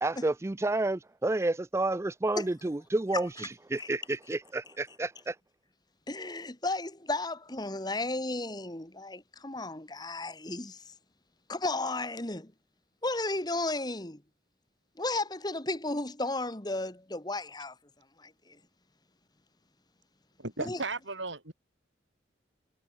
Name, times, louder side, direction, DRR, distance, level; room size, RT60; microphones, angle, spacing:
voice 1, 0.0-5.4, right 2 dB, 15° right, 0.4 m, -30 dB
voice 2, 6.1-10.8 11.5-12.5 13.0-14.2 15.0-17.7 18.2-18.3 20.6-20.8, left 2 dB, 20° left, 1.8 m, -34 dB
voice 3, 20.4-21.5, right 3 dB, 85° right, 7.6 m, -35 dB
head